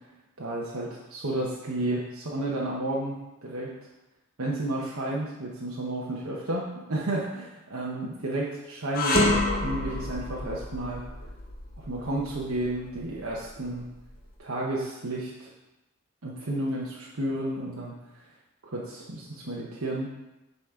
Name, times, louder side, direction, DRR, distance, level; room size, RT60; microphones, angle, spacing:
voice 1, 0.4-3.7 4.4-11.0 11.8-13.9 14.4-15.5 16.2-18.0 18.6-20.1, right 1 dB, 75° right, -5 dB, 1.0 m, -32 dB
sound 1, 8.9-14.2, left 1 dB, 40° left, 0.9 m, -29 dB
8.8 x 4.2 x 3.7 m, 1.0 s
head